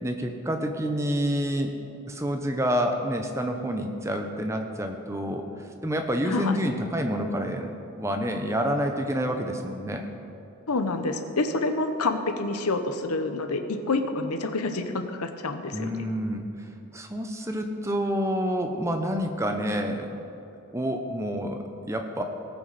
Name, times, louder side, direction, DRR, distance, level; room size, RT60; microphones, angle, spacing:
voice 1, 0.0-1.7 2.1-5.4 5.8-10.1 15.7-16.4 16.9-20.2 20.7-22.2, equal, 15° right, 4 dB, 0.6 m, -28 dB
voice 2, 6.3-6.6 10.7-13.6 13.9-15.9, left 3 dB, 90° left, 8 dB, 0.8 m, -28 dB
18.5 x 6.2 x 4.1 m, 2.8 s
head